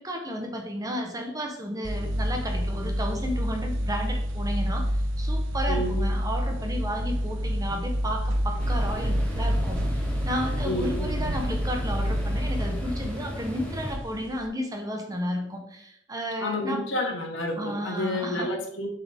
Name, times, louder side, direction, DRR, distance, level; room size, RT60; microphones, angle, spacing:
voice 1, 0.0-16.8 17.6-18.5, equal, 20° right, 3 dB, 0.9 m, -33 dB
sound 1, 1.8-14.5, equal, 70° right, 0.8 m, -28 dB
voice 2, 5.7-6.1 10.6-11.2 16.4-18.9, left 1 dB, 65° left, 1 dB, 1.4 m, -30 dB
sound 2, 8.6-14.0, equal, 5° left, 0.9 m, -35 dB
7.1 x 4.3 x 3.6 m, 0.72 s
head